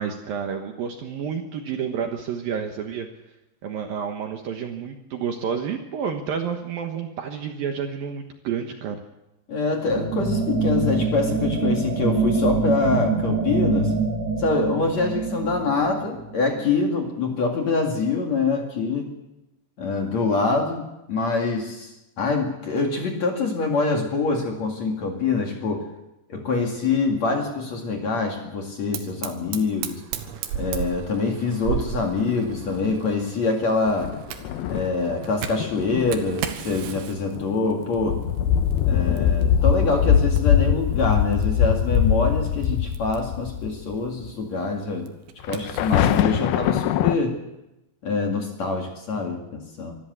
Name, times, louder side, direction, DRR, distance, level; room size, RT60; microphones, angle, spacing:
voice 1, 0.0-3.1 3.6-9.0, right 7 dB, 65° right, 4 dB, 2.5 m, -30 dB
voice 2, 9.5-13.9 14.4-19.1 19.8-25.9 26.3-30.0 30.5-34.1 34.7-38.2 38.9-45.1 45.5-47.4 48.0-49.9, left 3 dB, 45° left, 2 dB, 2.8 m, -25 dB
sound 1, 9.9-16.6, right 3 dB, 40° right, 1.7 m, -25 dB
Fire, 28.9-46.3, right 9 dB, 85° right, 3.7 m, -37 dB
sound 2, 32.5-33.1 33.9-35.2 35.6-36.2 36.7-37.0 37.4-37.6 37.9-44.0 44.2-44.3 45.4-47.2, left 9 dB, 80° left, 2.2 m, -22 dB
24.5 x 14.0 x 8.0 m, 0.94 s
omnidirectional pair, 5.3 m